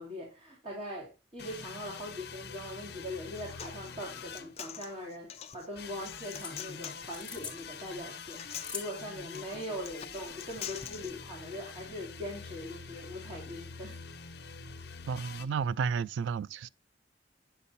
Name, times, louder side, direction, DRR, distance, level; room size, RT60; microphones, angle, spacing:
voice 1, 0.0-14.0, left 1 dB, 30° right, 3.4 m, -41 dB
sound 1, 1.4-5.1 5.8-15.5, left 5 dB, 60° left, 1.1 m, -46 dB
Human voice, 3.1-11.1, left 9 dB, 35° left, 0.5 m, -46 dB
sound 2, 5.8-10.8, left 5 dB, 5° left, 1.5 m, -47 dB
voice 2, 15.1-16.7, right 6 dB, 80° right, 0.3 m, -32 dB
9.1 x 6.9 x 2.6 m
head